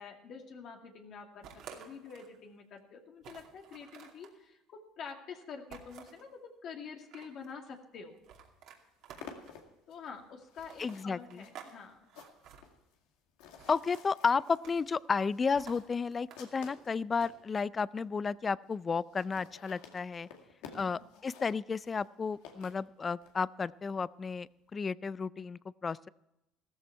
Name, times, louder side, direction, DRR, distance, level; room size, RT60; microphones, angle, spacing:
voice 1, 0.0-8.2 9.9-12.0 20.6-21.0, left 5 dB, 55° left, 3 dB, 2.2 m, -47 dB
sound 1, 1.4-2.4 2.8-2.9 3.2-4.3 5.7-6.3 6.9-7.5 8.2-9.6 10.6-11.7 12.0-12.6 13.6-14.0 14.4-14.9 15.5-16.7, right 8 dB, 70° right, 2.5 m, -52 dB
sound 2, 8.2-8.3 8.6-17.4 18.0-18.1 18.3-18.4 18.6-18.7 19.0-23.3, left 6 dB, 85° left, 2.1 m, -53 dB
voice 2, 10.8-11.4 13.7-20.3 20.7-26.1, left 5 dB, 30° left, 20 dB, 0.4 m, -33 dB
15.0 x 14.0 x 4.6 m, 0.87 s
supercardioid pair, 90°, 0 cm